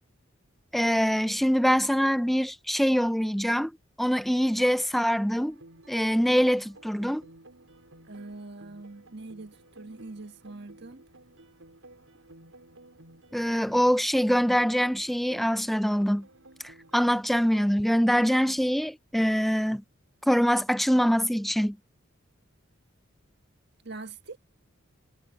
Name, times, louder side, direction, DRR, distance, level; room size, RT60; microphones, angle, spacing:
voice 1, 0.7-3.7 4.0-5.6 5.9-7.2 13.3-16.2 16.6-19.8 20.3-21.8, equal, ahead, 0.4 m, -24 dB
sound 1, 5.3-17.2, right 2 dB, 80° right, 5.1 m, -54 dB
voice 2, 8.1-11.0 23.8-24.4, right 3 dB, 50° right, 1.7 m, -43 dB
head